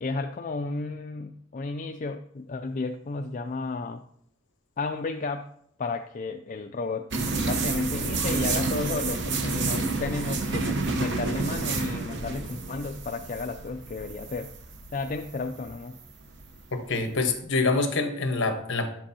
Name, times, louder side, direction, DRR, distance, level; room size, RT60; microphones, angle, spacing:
voice 1, 0.0-4.0 4.8-5.5 5.8-7.1 7.5-14.5 14.9-16.0, left 3 dB, 35° left, 6 dB, 0.4 m, -32 dB
sound 1, 7.1-17.3, right 3 dB, 55° right, 1.0 m, -30 dB
voice 2, 16.7-18.9, left 3 dB, 60° left, 6 dB, 1.2 m, -26 dB
10.0 x 7.5 x 2.8 m, 0.69 s
head